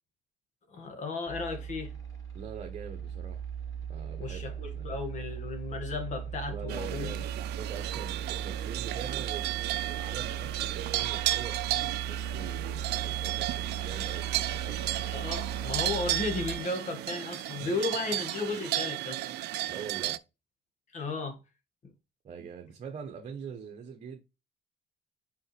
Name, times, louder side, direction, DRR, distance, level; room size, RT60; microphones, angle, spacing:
voice 1, 0.7-1.9 4.2-7.1 15.1-19.2 20.9-21.4 21.8-21.9, left 3 dB, 45° left, 2.0 m, -34 dB
sound 1, 1.3-16.6, right 8 dB, 20° left, 3.3 m, -38 dB
voice 2, 2.3-3.4 3.9-4.9 6.5-14.8 17.6-17.8 19.7-20.2 22.2-24.2, right 6 dB, 45° right, 1.3 m, -43 dB
sound 2, 6.7-20.2, right 16 dB, 80° right, 0.5 m, -33 dB
5.5 x 5.2 x 3.4 m
cardioid pair, 110°, 17 cm